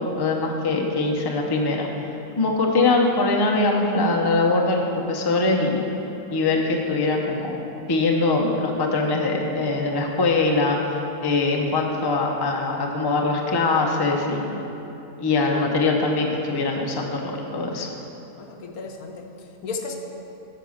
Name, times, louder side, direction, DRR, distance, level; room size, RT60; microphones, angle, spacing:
voice 1, 0.0-1.9 2.4-4.8 5.1-5.8 6.3-7.6 7.9-10.8 11.2-14.5 15.2-17.9, left 3 dB, 25° left, 1 dB, 0.6 m, -22 dB
voice 2, 18.4-20.0, left 4 dB, 75° left, 3 dB, 1.2 m, -34 dB
8.9 x 5.8 x 6.4 m, 3.0 s
omnidirectional pair, 1.6 m